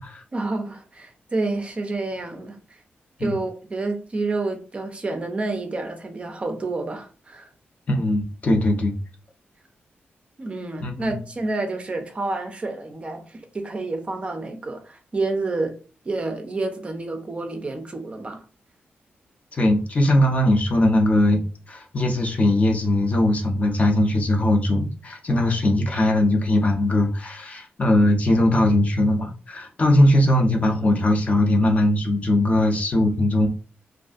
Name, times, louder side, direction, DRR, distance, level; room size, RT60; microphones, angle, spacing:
voice 1, 0.3-2.8 3.2-7.5 10.4-15.8 16.0-18.4, right 2 dB, 30° right, 0.4 m, -29 dB
voice 2, 7.9-9.0 10.8-11.1 19.5-21.4 21.7-33.5, left 1 dB, 35° left, 0.5 m, -20 dB
2.5 x 2.4 x 2.3 m
wide cardioid pair, 140°, 4 cm